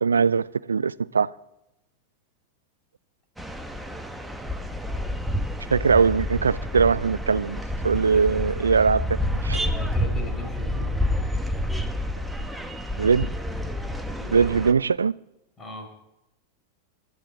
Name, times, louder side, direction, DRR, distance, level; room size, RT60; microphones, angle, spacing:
voice 1, 0.0-1.3 5.7-9.0 9.4-9.6 13.0-13.3 14.3-15.1, right 5 dB, 75° right, 0.4 m, -21 dB
sound 1, 3.4-14.7, left 1 dB, 5° right, 1.3 m, -29 dB
voice 2, 9.7-10.9 14.1-14.5 15.6-16.1, left 1 dB, 25° left, 5.5 m, -39 dB
26.5 x 13.0 x 3.6 m
figure-of-eight pair, 90°, 0 cm